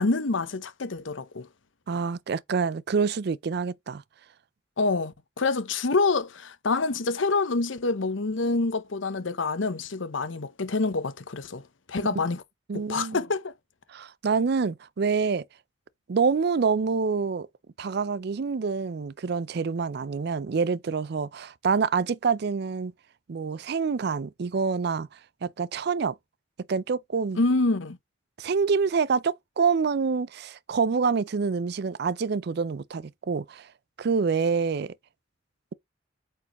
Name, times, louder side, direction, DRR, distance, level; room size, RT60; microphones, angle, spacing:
voice 1, 0.0-1.5 4.8-11.6 11.9-12.4 12.7-13.5 27.4-28.0, left 3 dB, 90° left, 0.9 m, -27 dB
voice 2, 1.9-4.0 12.1-12.2 12.7-13.2 13.9-15.4 16.1-17.5 17.8-22.9 23.3-25.1 25.4-26.2 26.7-27.4 28.4-33.7 34.0-34.9, right 5 dB, 60° right, 0.4 m, -26 dB
8.4 x 4.6 x 3.0 m
head